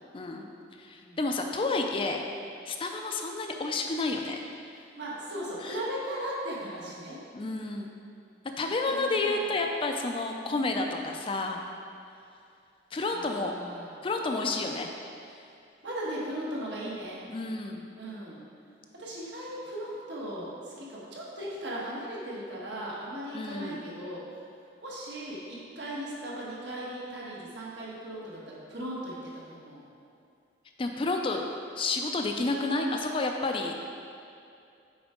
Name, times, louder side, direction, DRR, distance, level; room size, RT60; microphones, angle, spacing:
voice 1, 0.1-0.5 0.8-2.2 2.7-4.4 5.6-5.8 7.3-7.9 8.6-11.6 12.9-13.5 14.0-14.9 17.3-17.8 23.3-23.8 30.8-31.4 31.8-33.8, left 3 dB, 30° left, 3 dB, 0.4 m, -30 dB
voice 2, 5.0-7.2 8.9-9.4 13.1-13.9 15.8-17.2 18.0-18.4 19.0-24.2 24.8-29.8, right 1 dB, 70° right, -5 dB, 1.4 m, -37 dB
7.2 x 4.8 x 3.7 m, 2.5 s
head